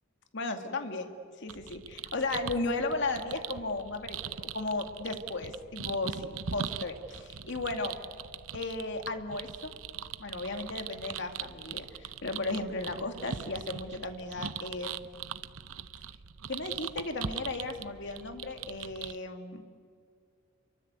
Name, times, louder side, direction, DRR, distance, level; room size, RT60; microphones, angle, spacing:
voice 1, 0.3-1.1 1.4-1.8 2.1-8.0 8.5-9.7 10.2-15.1 16.5-19.6, left 2 dB, 60° left, 5 dB, 2.3 m, -35 dB
sound 1, 1.5-19.2, right 7 dB, 90° right, 0.8 m, -41 dB
29.0 x 23.5 x 8.3 m, 2.2 s
head